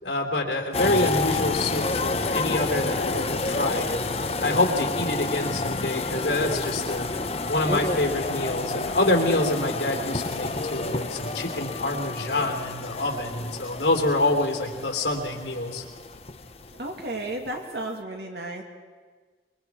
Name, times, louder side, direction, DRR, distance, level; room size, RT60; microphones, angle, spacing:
voice 1, 0.0-4.0 4.4-7.1 7.5-15.8, left 2 dB, 80° left, 1 dB, 3.2 m, -26 dB
sound 1, 0.7-17.0 17.3-17.6, left 3 dB, 35° left, 0.9 m, -29 dB
voice 2, 16.8-18.6, right 1 dB, 70° right, 2 dB, 2.3 m, -33 dB
25.5 x 22.5 x 4.8 m, 1.5 s
head